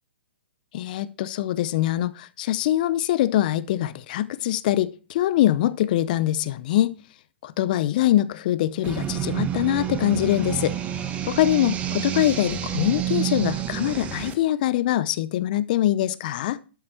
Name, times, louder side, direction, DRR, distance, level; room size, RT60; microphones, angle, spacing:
voice 1, 0.7-7.0 7.4-10.8 11.3-16.6, left 13 dB, 50° left, 0.7 m, -23 dB
sound 1, 8.8-14.3, right 10 dB, 20° right, 1.4 m, -29 dB
12.0 x 7.6 x 4.4 m
hypercardioid pair, 125°, 6 cm